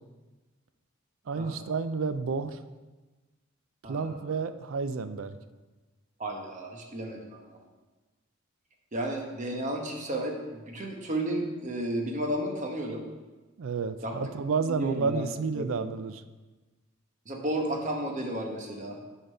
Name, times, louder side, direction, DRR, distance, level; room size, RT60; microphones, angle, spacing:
voice 1, 1.3-2.6 3.9-5.4 13.6-16.2, right 5 dB, 75° right, 12 dB, 0.4 m, -30 dB
voice 2, 3.8-4.3 6.2-7.6 8.9-10.4 10.6-13.0 14.0-14.2 14.6-15.2 15.6-15.8 17.3-19.0, right 1 dB, 35° right, 2 dB, 1.0 m, -33 dB
7.8 x 3.9 x 5.4 m, 1.2 s
head